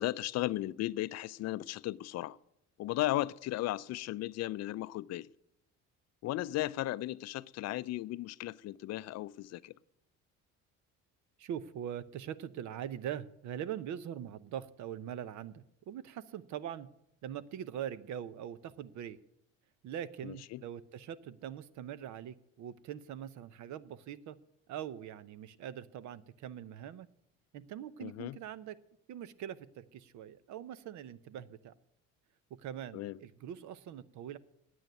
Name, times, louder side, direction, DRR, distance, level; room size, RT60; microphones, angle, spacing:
voice 1, 0.0-2.4 2.8-5.3 6.2-9.7 20.2-20.6 28.0-28.4 32.9-33.2, left 16 dB, 55° left, 0.5 m, -36 dB
voice 2, 11.4-16.9 17.2-19.2 19.8-24.4 24.7-27.1 27.5-28.8 29.1-31.7 32.6-34.4, right 10 dB, 65° right, 0.8 m, -42 dB
9.3 x 8.9 x 9.3 m
cardioid pair, 95°, 31 cm